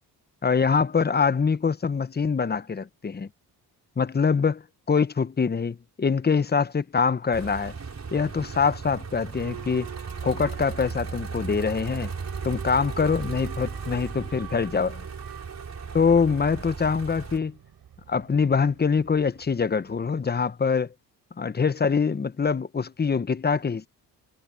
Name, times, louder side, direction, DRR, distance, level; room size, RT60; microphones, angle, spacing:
voice 1, 0.4-3.3 4.0-4.6 4.9-7.7 8.1-9.9 10.2-12.1 12.4-15.0 15.9-17.6 18.1-20.9 21.4-23.9, left 5 dB, 25° left, 0.9 m, -24 dB
sound 1, 7.3-17.4, right 5 dB, 40° right, 5.5 m, -36 dB
Boat Water vehicle / Alarm, 9.4-20.0, right 11 dB, 60° right, 3.9 m, -45 dB
cardioid pair, 75°, 41 cm